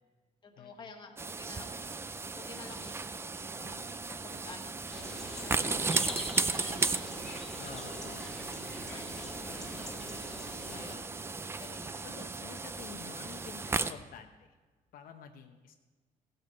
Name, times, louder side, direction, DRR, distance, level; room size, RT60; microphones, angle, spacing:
voice 1, 0.4-7.8 8.6-10.4 10.7-11.1 11.6-12.2, left 4 dB, 30° left, 2 dB, 1.5 m, -52 dB
sound 1, 1.2-13.9, right 4 dB, 15° right, 0.4 m, -36 dB
sound 2, 4.9-10.9, left 1 dB, ahead, 1.5 m, -44 dB
voice 2, 7.6-8.3 10.6-11.2 12.0-14.5 14.9-15.7, left 8 dB, 70° left, 4 dB, 0.9 m, -49 dB
15.5 x 7.9 x 5.4 m, 1.3 s
cardioid pair, 155°, 15 cm